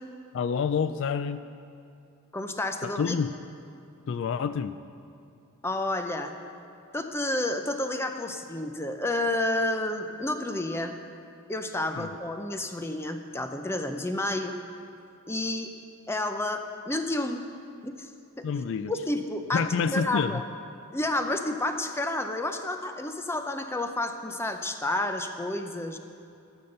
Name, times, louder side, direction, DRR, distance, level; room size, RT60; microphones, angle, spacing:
voice 1, 0.3-1.4 2.8-3.3 4.1-4.8 12.0-12.1 18.4-18.9 19.5-20.4, left 6 dB, 60° left, 12 dB, 0.3 m, -28 dB
voice 2, 2.3-3.2 5.6-6.3 6.9-10.9 11.5-14.6 15.3-15.7 16.1-17.4 17.8-18.1 18.4-18.5 18.9-19.6 19.9-20.4 20.9-26.0, left 1 dB, 10° left, 6 dB, 0.6 m, -30 dB
13.5 x 7.2 x 6.6 m, 2.5 s
head